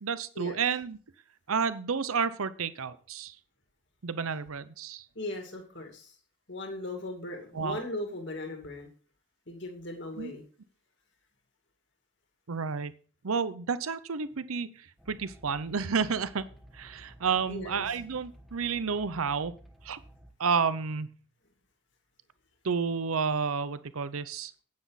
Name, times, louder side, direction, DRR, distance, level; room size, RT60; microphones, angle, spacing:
voice 1, 0.0-1.0 1.5-3.4 4.0-5.1 7.5-7.8 10.2-10.3 12.5-12.9 13.2-16.4 16.7-19.5 19.8-20.0 20.4-21.1 22.6-24.5, right 5 dB, 85° right, 14 dB, 0.7 m, -30 dB
voice 2, 5.1-6.2 6.5-8.9 9.5-10.4 17.5-17.9, left 1 dB, 55° left, 2 dB, 2.4 m, -38 dB
sound 1, 15.0-20.3, equal, ahead, 1.1 m, -54 dB
9.5 x 9.5 x 4.1 m, 0.40 s
head